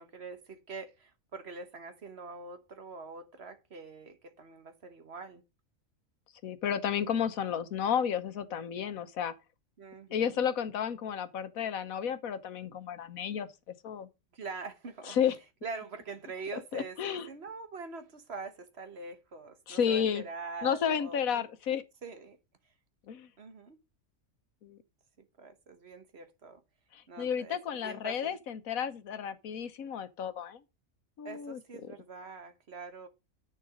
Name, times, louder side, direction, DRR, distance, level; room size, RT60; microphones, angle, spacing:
voice 1, 0.0-5.4 9.8-10.4 14.3-15.2 15.6-21.5 22.0-22.4 23.4-23.8 25.2-26.6 27.1-28.4 31.2-33.1, right 4 dB, 50° right, 1.4 m, -44 dB
voice 2, 6.4-9.3 10.1-13.5 13.8-14.1 15.1-15.3 16.7-17.3 19.7-20.2 20.6-21.8 23.1-23.3 24.6-24.8 26.9-30.6 31.2-31.9, left 8 dB, 90° left, 1.4 m, -32 dB
8.7 x 6.8 x 5.1 m
omnidirectional pair, 1.4 m